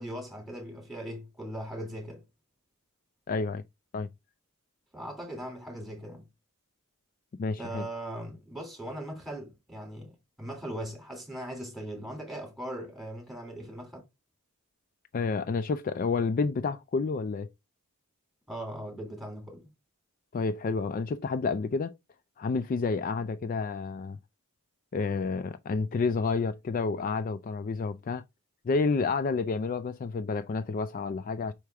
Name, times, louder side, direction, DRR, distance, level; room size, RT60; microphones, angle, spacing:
voice 1, 0.0-2.2 4.9-6.2 7.6-14.0 18.5-19.7, right 1 dB, ahead, 3.0 m, -39 dB
voice 2, 3.3-3.6 3.9-4.1 7.4-7.9 15.1-17.5 20.3-21.9 22.4-24.2 24.9-28.2 28.6-31.5, left 4 dB, 40° left, 0.3 m, -29 dB
5.6 x 4.8 x 3.5 m
head